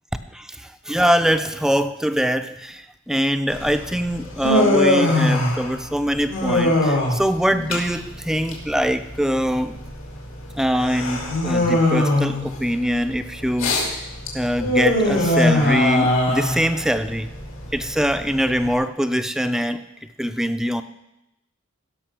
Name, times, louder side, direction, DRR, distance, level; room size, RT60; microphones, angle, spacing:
voice 1, 0.3-9.8 10.6-14.0 14.3-17.3 17.7-19.9 20.2-20.8, equal, 5° right, 9 dB, 0.4 m, -23 dB
Human voice, 3.5-18.7, left 1 dB, 80° left, 2.8 m, -22 dB
16.5 x 6.3 x 6.1 m, 0.88 s
head